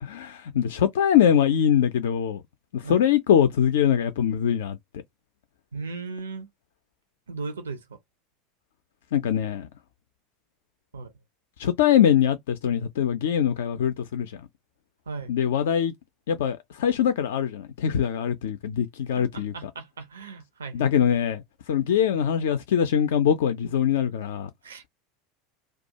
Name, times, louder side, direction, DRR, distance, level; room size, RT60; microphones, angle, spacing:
voice 1, 0.0-2.4 2.7-4.8 9.1-9.7 11.6-14.4 15.3-15.9 16.3-19.5 20.7-21.4 21.7-24.5, left 9 dB, 65° left, 0.3 m, -23 dB
voice 2, 5.7-6.5 7.3-8.0 10.9-11.1 15.1-15.3 19.1-20.9 24.6-24.9, right 4 dB, 75° right, 0.5 m, -37 dB
2.3 x 2.2 x 2.7 m
figure-of-eight pair, 75°, 0 cm